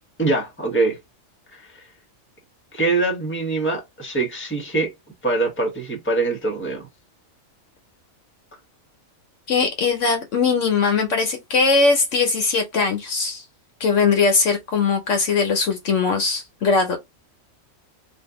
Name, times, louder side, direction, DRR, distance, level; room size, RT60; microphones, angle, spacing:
voice 1, 0.2-1.0 1.5-1.8 2.7-4.9 5.2-6.9, right 3 dB, 10° left, 0.9 m, -23 dB
voice 2, 9.5-13.4 13.8-17.0, left 4 dB, 65° left, 1.0 m, -20 dB
2.7 x 2.5 x 3.5 m
omnidirectional pair, 1.4 m